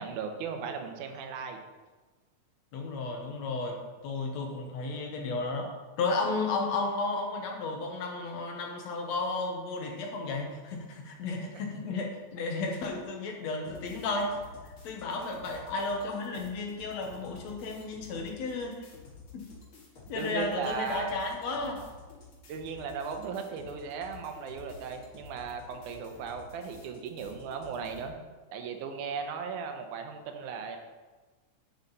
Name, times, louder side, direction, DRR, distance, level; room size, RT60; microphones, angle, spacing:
voice 1, 0.0-1.6 11.4-11.5 20.1-21.1 22.5-28.2 28.5-30.8, right 6 dB, 85° right, 5 dB, 2.4 m, -37 dB
voice 2, 2.7-5.7 6.0-18.9 19.3-19.5 20.1-21.8, left 3 dB, 65° left, 2 dB, 2.3 m, -33 dB
sound 1, 13.6-28.1, left 4 dB, 45° left, 2.5 m, -51 dB
8.6 x 8.4 x 4.1 m, 1.3 s
omnidirectional pair, 3.5 m